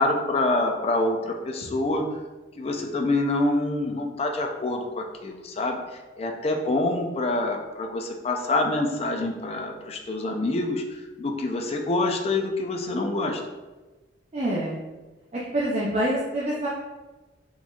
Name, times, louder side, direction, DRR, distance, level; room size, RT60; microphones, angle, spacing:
voice 1, 0.0-2.0 2.6-13.4, left 2 dB, 35° left, 2 dB, 0.4 m, -26 dB
voice 2, 14.3-14.8 15.5-16.7, right 1 dB, 35° right, -6 dB, 0.5 m, -26 dB
4.1 x 3.0 x 2.3 m, 1.2 s
head